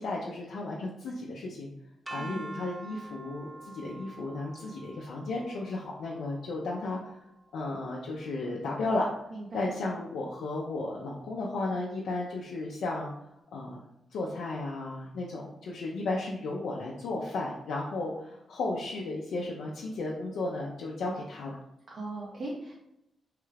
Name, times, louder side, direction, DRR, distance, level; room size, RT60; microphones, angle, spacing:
voice 1, 0.0-1.7 2.1-7.2 7.5-9.1 9.5-13.1 13.5-13.8 14.1-21.6, left 2 dB, 85° left, -3 dB, 0.5 m, -34 dB
sound 1, 2.1-8.0, right 2 dB, 15° right, 0.4 m, -47 dB
voice 2, 2.2-2.6 9.3-9.8 21.9-22.7, right 2 dB, 60° right, -5 dB, 0.7 m, -39 dB
3.2 x 2.3 x 3.2 m, 0.84 s
cardioid pair, 80°, 0 cm